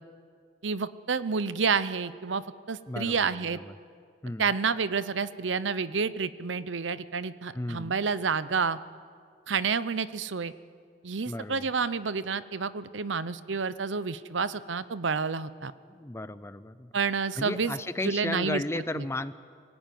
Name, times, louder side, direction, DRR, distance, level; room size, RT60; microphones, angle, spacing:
voice 1, 0.6-2.4 2.7-3.6 4.4-8.8 9.5-10.5 11.0-15.7 16.9-17.7 18.0-19.0, right 5 dB, 85° right, 15 dB, 0.8 m, -29 dB
voice 2, 2.9-3.8 4.2-4.5 7.5-7.9 11.3-11.7 15.9-16.9 17.4-19.3, left 1 dB, 15° left, 14 dB, 0.5 m, -34 dB
24.5 x 17.0 x 9.4 m, 2.2 s
head